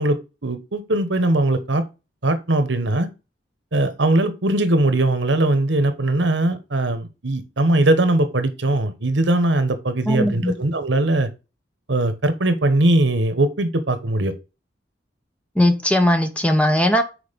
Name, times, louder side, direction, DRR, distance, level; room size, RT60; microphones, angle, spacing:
voice 1, 0.0-1.8 2.2-3.1 3.7-11.3 11.9-14.3, right 2 dB, 75° right, 1.2 m, -20 dB
voice 2, 10.1-10.5 15.6-17.0, left 1 dB, 5° left, 0.9 m, -18 dB
6.4 x 4.7 x 5.2 m
head